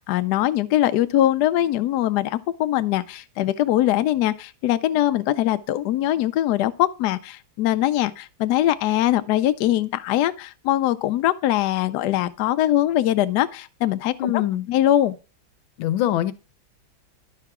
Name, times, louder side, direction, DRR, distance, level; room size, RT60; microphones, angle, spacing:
voice 1, 0.0-14.4 14.7-15.2, left 13 dB, 70° left, 1.0 m, -22 dB
voice 2, 14.2-14.7 15.8-16.3, left 12 dB, 90° left, 1.4 m, -23 dB
11.0 x 5.7 x 3.6 m
omnidirectional pair, 2.1 m